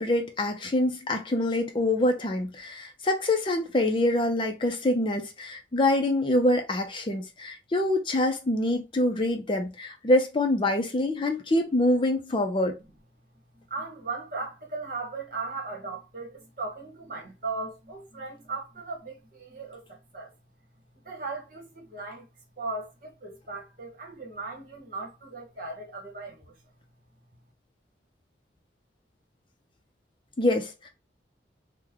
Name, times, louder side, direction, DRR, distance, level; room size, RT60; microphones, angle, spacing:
voice 1, 0.0-12.8 30.4-30.9, left 1 dB, 25° left, 0.4 m, -25 dB
voice 2, 13.5-20.3 21.0-22.3 22.6-26.5, right 3 dB, 50° right, 1.1 m, -37 dB
3.1 x 2.1 x 3.5 m
head